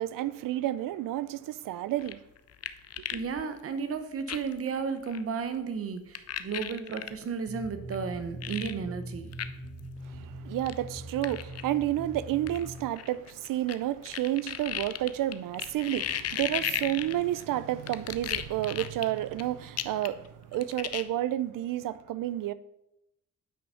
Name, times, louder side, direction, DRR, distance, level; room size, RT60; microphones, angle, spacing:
voice 1, 0.0-2.2 10.1-22.5, right 13 dB, 75° right, 0.5 m, -31 dB
sound 1, 2.0-3.3 3.6-3.7 4.3-4.6 5.1-5.2 6.1-7.1 7.9-8.0 8.4-8.7 9.3-9.5 9.8-9.9 10.6-10.7 11.2-11.6 12.5-13.8 14.1-17.4 17.9-19.4 19.8-20.3 20.5-21.0, left 10 dB, 50° left, 0.5 m, -34 dB
voice 2, 3.1-9.3, right 5 dB, 45° right, 0.9 m, -33 dB
sound 2, 7.5-12.8, right 1 dB, 20° right, 1.5 m, -42 dB
8.9 x 5.4 x 5.6 m
wide cardioid pair, 165°, 33 cm